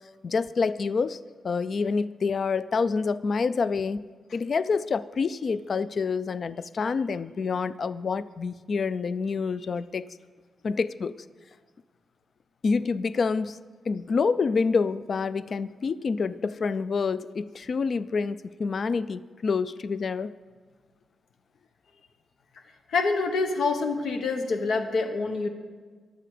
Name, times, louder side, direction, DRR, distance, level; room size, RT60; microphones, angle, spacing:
voice 1, 0.2-4.0 4.3-10.1 10.6-11.2 12.6-13.6 13.9-20.3, left 5 dB, 40° left, 16 dB, 0.3 m, -27 dB
voice 2, 22.9-25.5, left 3 dB, 85° left, 5 dB, 1.3 m, -26 dB
22.5 x 7.6 x 5.0 m, 1.5 s
wide cardioid pair, 170°, 0 cm